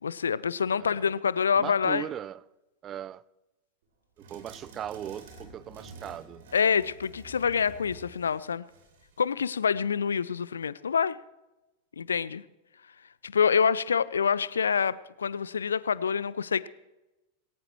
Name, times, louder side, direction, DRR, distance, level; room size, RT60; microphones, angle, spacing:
voice 1, 0.0-2.0 6.5-8.7 9.2-11.2 12.0-12.4 13.2-16.7, left 6 dB, 70° left, 0.5 m, -26 dB
voice 2, 1.5-2.4 2.8-3.2 4.3-6.4, right 10 dB, 30° right, 0.4 m, -38 dB
sound 1, 4.2-9.2, right 2 dB, 60° right, 3.4 m, -49 dB
20.5 x 18.0 x 3.1 m
figure-of-eight pair, 90°, 0 cm